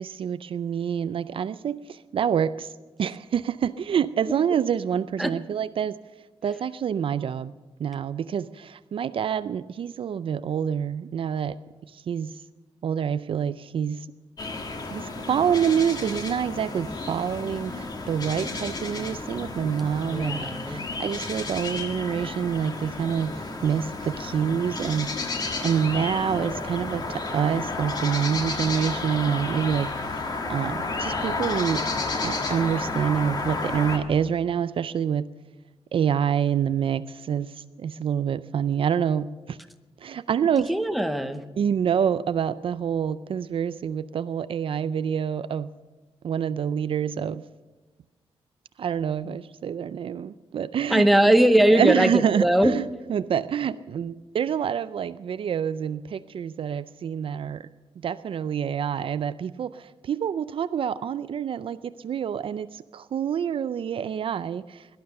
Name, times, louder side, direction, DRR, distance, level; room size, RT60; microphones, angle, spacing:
voice 1, 0.0-2.7 3.0-6.0 6.4-11.6 11.9-12.4 12.8-14.1 14.9-25.3 25.6-31.9 32.1-35.3 35.9-39.6 40.0-40.7 41.6-45.7 46.2-47.4 48.8-51.1 51.7-57.7 58.0-64.9, right 8 dB, 60° right, 14 dB, 0.4 m, -27 dB
sound 1, 14.4-34.0, left 3 dB, 40° left, 1.5 m, -32 dB
voice 2, 20.1-20.8 40.7-41.4 50.9-52.7, right 1 dB, ahead, 8 dB, 0.8 m, -20 dB
17.5 x 11.5 x 6.7 m, 1.2 s
wide cardioid pair, 170°, 11 cm